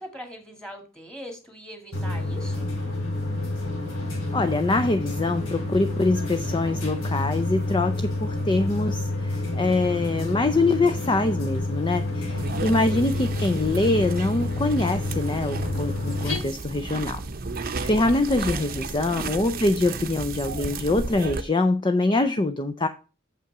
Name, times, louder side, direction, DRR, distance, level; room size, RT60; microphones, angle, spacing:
voice 1, 0.0-2.7 12.5-13.0 18.3-18.9, equal, 5° left, 3 dB, 2.1 m, -42 dB
sound 1, 1.9-16.4, left 2 dB, 90° left, 3.3 m, -28 dB
voice 2, 4.3-17.2 17.8-22.9, left 2 dB, 25° left, 9 dB, 0.5 m, -24 dB
sound 2, 12.4-21.4, right 3 dB, 45° right, 0.7 m, -33 dB
7.4 x 5.7 x 5.9 m, 0.33 s
head